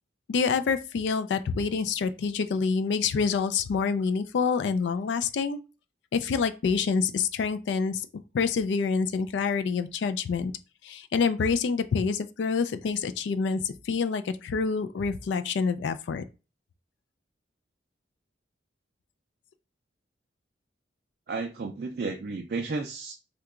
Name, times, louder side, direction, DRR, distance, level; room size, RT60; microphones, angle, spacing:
voice 1, 0.3-5.6 6.1-8.0 8.3-10.5 10.8-16.3, left 5 dB, 70° left, 0.3 m, -27 dB
voice 2, 21.3-23.1, right 3 dB, 50° right, 0.3 m, -32 dB
2.8 x 2.2 x 3.6 m
head